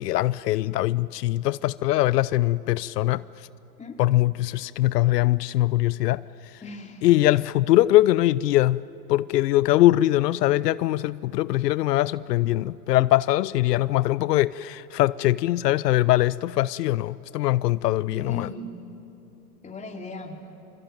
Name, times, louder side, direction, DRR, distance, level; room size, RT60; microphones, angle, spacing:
voice 1, 0.0-3.2 4.0-6.2 7.0-8.8 9.1-18.5, left 16 dB, 85° left, 18 dB, 0.6 m, -22 dB
voice 2, 6.6-7.0 18.1-18.8 19.6-20.5, left 2 dB, 15° left, 2 dB, 3.1 m, -37 dB
26.5 x 25.0 x 9.1 m, 2.8 s
hypercardioid pair, 120°, 47 cm